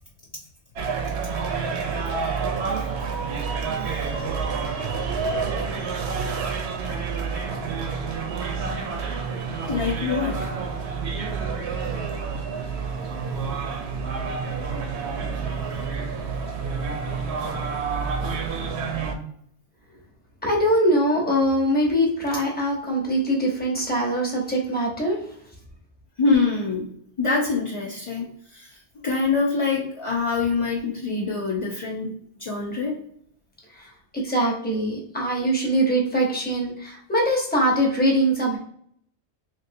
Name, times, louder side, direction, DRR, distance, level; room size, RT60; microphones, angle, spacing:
sound 1, 0.8-19.2, right 5 dB, 75° right, 0.8 m, -28 dB
voice 1, 9.7-10.5 26.2-26.9 27.2-28.8 29.0-32.1 32.4-33.0, left 4 dB, 55° left, -3 dB, 0.3 m, -25 dB
voice 2, 20.4-25.2 33.8-33.9 34.1-38.6, right 1 dB, 10° left, -2 dB, 0.7 m, -22 dB
3.3 x 2.6 x 2.6 m, 0.65 s
omnidirectional pair, 1.2 m